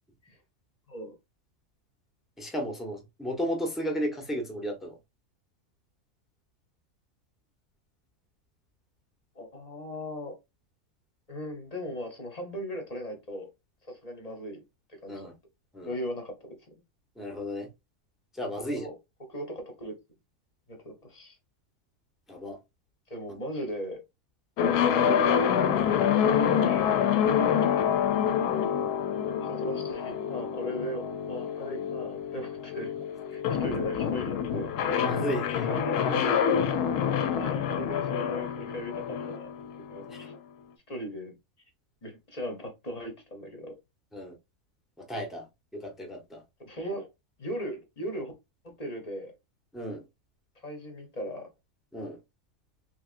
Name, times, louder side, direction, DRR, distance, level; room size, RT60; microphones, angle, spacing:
voice 1, 2.4-5.0 15.1-15.3 15.7-15.9 17.2-17.7 18.3-18.9 22.3-22.6 35.0-35.7 40.1-40.2 44.1-44.3 45.1-45.5 45.7-46.4 49.7-50.0 51.9-52.2, equal, ahead, 0.4 m, -34 dB
voice 2, 9.3-10.3 11.3-13.5 13.9-14.6 15.0-15.3 15.8-16.6 18.7-19.0 19.3-20.0 20.7-21.4 23.1-24.0 24.6-25.8 28.5-28.9 29.4-32.9 33.3-34.7 35.6-36.6 37.4-39.5 39.9-40.3 40.9-41.3 42.0-43.8 46.6-47.1 47.4-48.3 48.8-49.3 50.6-51.5, equal, 35° left, 0.7 m, -38 dB
sound 1, 24.6-40.3, left 8 dB, 90° left, 1.2 m, -27 dB
3.5 x 3.2 x 2.4 m
omnidirectional pair, 1.6 m